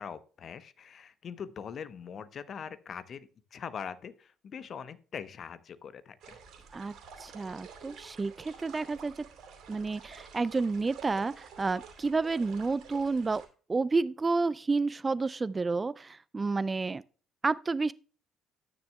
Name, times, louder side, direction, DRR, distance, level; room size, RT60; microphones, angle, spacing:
voice 1, 0.0-6.4, left 7 dB, 45° left, 0.8 m, -42 dB
sound 1, 6.2-13.5, right 6 dB, 55° right, 2.8 m, -50 dB
voice 2, 7.2-9.2 9.7-13.4 13.7-17.0 17.4-17.9, right 3 dB, 25° right, 0.3 m, -30 dB
13.0 x 9.5 x 2.2 m
figure-of-eight pair, 50°, 0 cm